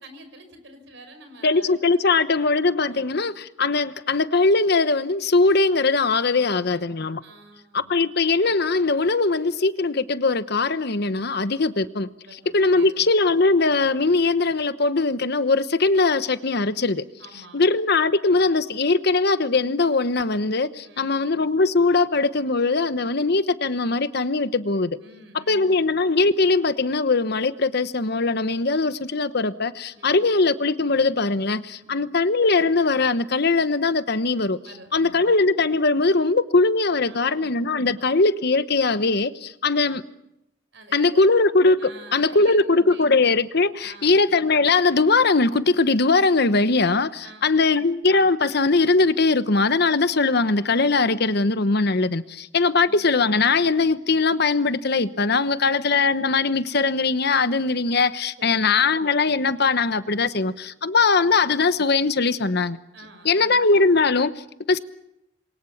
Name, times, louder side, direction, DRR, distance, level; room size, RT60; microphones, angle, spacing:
voice 1, 0.0-1.7 2.9-3.2 6.3-6.8 7.2-8.1 12.2-13.2 17.2-17.6 20.8-21.4 25.0-26.0 29.9-30.3 31.8-32.1 34.6-35.4 37.0-37.9 40.7-41.2 41.8-43.2 43.8-44.2 47.2-47.6 52.6-53.0 55.3-55.8 58.4-58.6 62.9-63.7, right 2 dB, 65° right, 5.7 m, -47 dB
voice 2, 1.4-7.2 7.7-12.1 12.5-17.0 17.5-25.0 25.5-34.6 34.9-40.0 40.9-62.8 63.2-64.8, left 3 dB, 55° left, 1.0 m, -21 dB
28.0 x 23.0 x 7.2 m
head